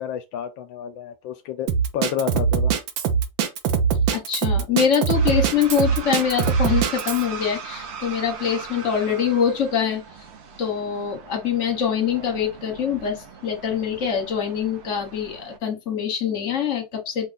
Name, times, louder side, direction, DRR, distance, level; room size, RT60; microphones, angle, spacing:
voice 1, 0.0-1.7 1.9-2.7, left 9 dB, 80° left, 1.3 m, -30 dB
Drum kit, 1.7-7.2, right 6 dB, 80° right, 1.6 m, -22 dB
voice 2, 4.1-10.0 10.6-17.3, left 7 dB, 40° left, 1.5 m, -24 dB
sound 1, 5.1-15.6, right 6 dB, 55° right, 0.8 m, -39 dB
5.2 x 2.3 x 4.0 m
omnidirectional pair, 2.1 m